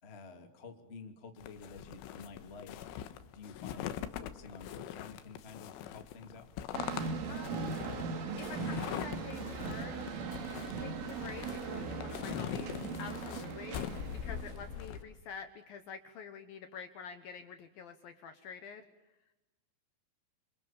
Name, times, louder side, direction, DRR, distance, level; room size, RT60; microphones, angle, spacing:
voice 1, 0.0-3.0 3.3-6.5, left 4 dB, 25° left, 5 dB, 1.3 m, -50 dB
sound 1, 1.4-15.0, left 10 dB, 85° left, 3.8 m, -42 dB
sound 2, 6.7-15.0, right 5 dB, 85° right, 5.3 m, -39 dB
voice 2, 7.3-7.7 8.1-9.9 10.8-12.7 13.0-18.9, left 6 dB, 65° left, 8 dB, 2.5 m, -47 dB
28.0 x 26.5 x 7.3 m, 0.98 s
omnidirectional pair, 5.5 m